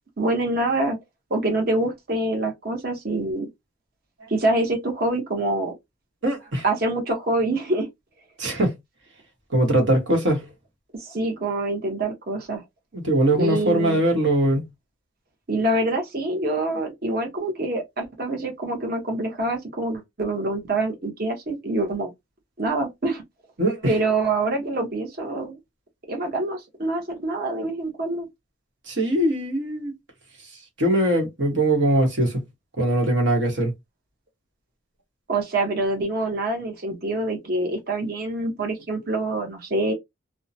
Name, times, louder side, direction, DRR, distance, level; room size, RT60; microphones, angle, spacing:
voice 1, 0.2-1.0 1.3-3.5 4.3-5.7 6.6-7.9 10.9-12.6 13.3-14.0 15.5-22.1 22.6-23.2 23.8-25.6 26.1-28.3 35.3-39.9, right 2 dB, 50° right, 0.9 m, -25 dB
voice 2, 6.2-6.6 8.4-8.7 9.5-10.4 12.9-14.7 23.6-23.9 28.9-29.9 30.8-32.4 32.8-33.7, right 1 dB, 70° right, 1.3 m, -21 dB
2.7 x 2.1 x 2.7 m
head